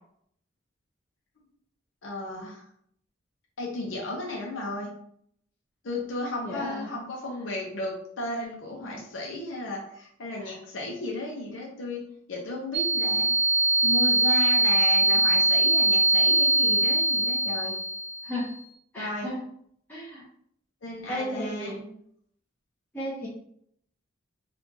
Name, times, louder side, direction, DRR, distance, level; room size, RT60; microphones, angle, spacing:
voice 1, 2.0-2.6 3.6-4.9 5.8-12.0 12.3-13.3 13.8-17.8 19.0-19.3 20.8-21.7, left 1 dB, 70° left, -2 dB, 0.7 m, -34 dB
voice 2, 6.5-6.9 8.8-8.9 10.4-10.5 18.2-18.5 18.9-19.4 19.9-20.2 21.1-21.9 22.9-23.3, equal, 10° left, -7 dB, 0.6 m, -34 dB
sound 1, 12.7-18.4, right 2 dB, 55° right, 0.4 m, -22 dB
2.8 x 2.4 x 3.7 m, 0.67 s
head